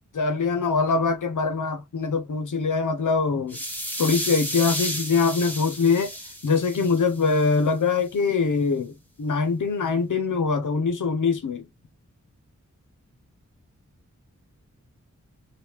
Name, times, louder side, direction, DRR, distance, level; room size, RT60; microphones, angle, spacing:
voice 1, 0.1-3.6 4.0-6.1 6.4-11.6, left 4 dB, 80° left, 0.9 m, -23 dB
sound 1, 3.5-7.6, equal, 5° left, 0.9 m, -33 dB
3.5 x 2.5 x 3.0 m
wide cardioid pair, 95°, 30 cm